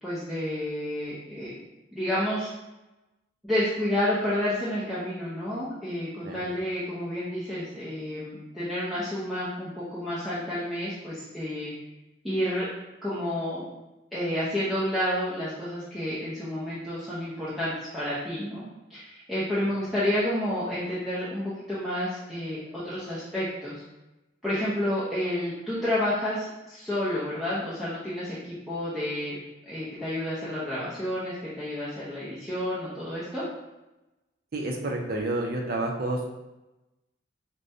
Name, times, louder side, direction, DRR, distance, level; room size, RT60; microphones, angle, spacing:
voice 1, 0.0-1.6 1.9-2.5 3.4-11.7 12.2-12.7 13.0-13.7 14.1-18.6 18.9-23.8 24.4-29.4 29.7-33.4, left 1 dB, ahead, -12 dB, 0.6 m, -30 dB
voice 2, 34.5-36.2, right 2 dB, 50° right, 1 dB, 0.5 m, -29 dB
4.9 x 2.2 x 2.6 m, 1.0 s
head